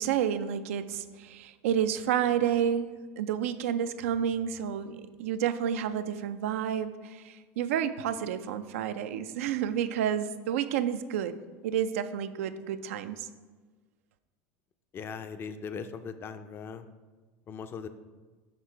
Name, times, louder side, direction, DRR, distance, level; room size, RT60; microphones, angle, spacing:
voice 1, 0.0-2.9 3.2-11.3 11.6-13.3, right 9 dB, 80° right, 11 dB, 0.4 m, -30 dB
voice 2, 14.9-16.9 17.5-17.9, left 6 dB, 30° left, 10 dB, 0.4 m, -39 dB
6.6 x 3.6 x 4.4 m, 1.3 s
supercardioid pair, 105°, 7 cm